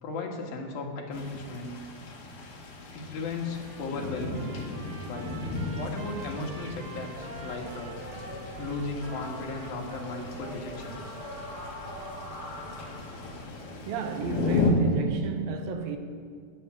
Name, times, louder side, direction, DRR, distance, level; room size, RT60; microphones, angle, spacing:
voice 1, 0.0-1.8 2.9-4.4 5.1-5.3 5.7-8.0 8.6-11.2, left 3 dB, 85° left, 3.7 m, -36 dB
sound 1, 1.1-14.7, left 4 dB, 65° left, 3.7 m, -36 dB
Trumpet, 3.5-10.3, right 5 dB, 55° right, 1.7 m, -48 dB
sound 2, 7.1-13.4, equal, 10° left, 4.2 m, -42 dB
voice 2, 13.9-16.0, right 6 dB, 80° right, 2.9 m, -32 dB
20.5 x 10.0 x 7.0 m
omnidirectional pair, 4.1 m